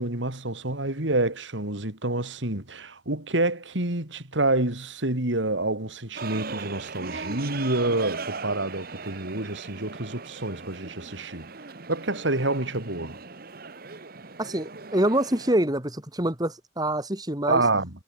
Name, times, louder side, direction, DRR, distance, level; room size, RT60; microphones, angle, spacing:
voice 1, 0.0-11.5 11.9-13.2 17.5-17.9, right 2 dB, 80° right, 3.6 m, -28 dB
sound 1, 6.2-15.6, right 4 dB, 55° right, 1.6 m, -39 dB
voice 2, 14.4-17.6, right 1 dB, 20° right, 3.2 m, -26 dB
head